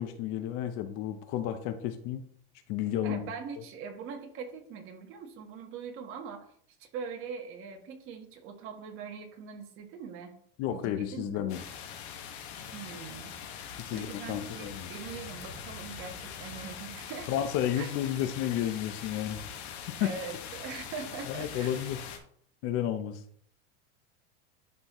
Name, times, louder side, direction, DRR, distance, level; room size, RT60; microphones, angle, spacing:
voice 1, 0.0-2.3 2.7-3.3 10.6-11.6 13.8-14.9 17.3-19.4 20.0-20.1 21.3-22.0 22.6-23.2, left 11 dB, 45° left, 10 dB, 0.7 m, -32 dB
voice 2, 3.0-6.5 6.8-10.3 10.7-11.5 12.7-13.3 13.9-17.4 17.8-17.9 20.0-21.8, right 6 dB, 40° right, 5 dB, 1.4 m, -42 dB
sound 1, 11.5-22.2, left 7 dB, 80° left, 1.6 m, -42 dB
11.5 x 4.1 x 3.0 m, 0.62 s
supercardioid pair, 150°, 32 cm